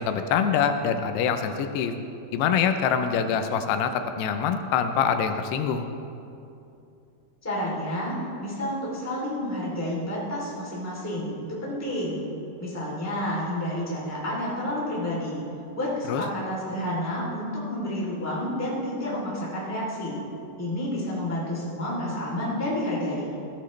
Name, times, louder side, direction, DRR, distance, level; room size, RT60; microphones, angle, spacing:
voice 1, 0.0-1.9 2.3-5.9 16.1-16.2, left 7 dB, 90° left, 8 dB, 2.8 m, -25 dB
voice 2, 7.4-12.2 12.6-15.4 15.7-20.2 20.6-23.3, left 1 dB, 5° left, -6 dB, 2.3 m, -30 dB
15.0 x 13.5 x 3.3 m, 2.7 s
omnidirectional pair, 4.7 m